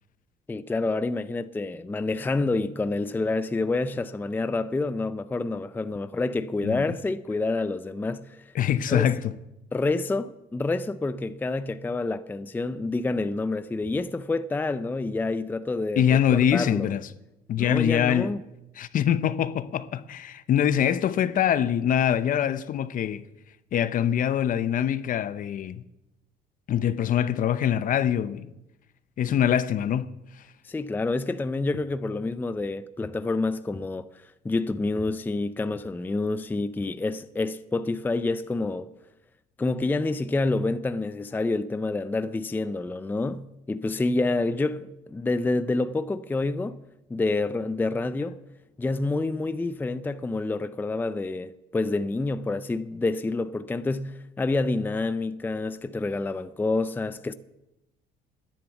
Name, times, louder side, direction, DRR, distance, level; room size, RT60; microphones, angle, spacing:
voice 1, 0.5-8.4 8.9-9.0 9.7-16.9 17.6-18.4 30.6-34.1 34.4-38.9 39.6-46.8 47.1-48.4 48.8-57.3, left 3 dB, 10° left, 0.4 m, -28 dB
voice 2, 6.6-7.0 8.5-9.3 16.0-17.1 17.5-18.3 18.8-23.2 23.7-25.8 26.7-28.5 29.2-30.1, left 9 dB, 55° left, 0.7 m, -24 dB
10.5 x 10.0 x 8.0 m
cardioid pair, 110°, 17 cm